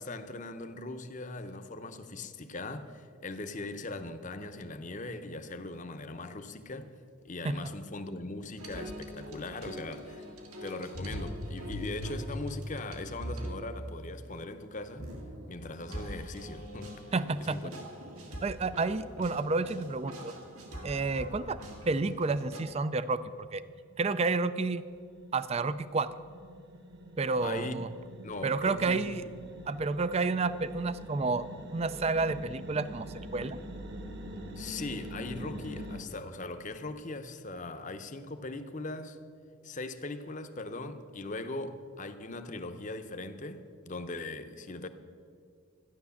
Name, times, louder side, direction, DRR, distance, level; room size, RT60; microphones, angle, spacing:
voice 1, 0.0-6.9 7.2-10.3 10.6-15.1 15.5-16.9 17.4-17.7 27.4-27.8 28.2-29.3 34.6-39.2 39.6-44.9, left 2 dB, 35° left, 9 dB, 0.8 m, -40 dB
sound 1, 8.6-13.6 15.0-22.6, equal, 80° right, 2.0 m, -42 dB
voice 2, 17.1-17.6 18.4-20.3 20.8-21.6 21.9-23.6 24.0-24.8 25.3-26.1 27.2-27.9 28.4-29.2 29.7-33.1 33.3-33.6, right 3 dB, 30° right, 14 dB, 0.4 m, -30 dB
sound 2, 23.2-36.0, equal, 50° right, 1.3 m, -45 dB
14.0 x 10.5 x 7.0 m, 2.3 s
head